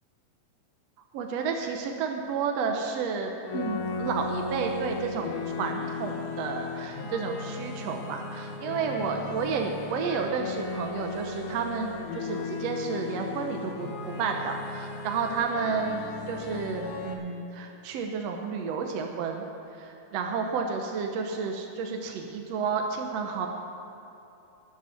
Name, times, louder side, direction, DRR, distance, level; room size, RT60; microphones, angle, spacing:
voice 1, 1.1-5.3 5.6-19.5 19.8-23.5, right 5 dB, 70° right, 3 dB, 1.7 m, -31 dB
sound 1, 3.4-17.1, left 4 dB, 75° left, 2.5 m, -36 dB
12.5 x 7.9 x 9.5 m, 2.9 s
omnidirectional pair, 3.6 m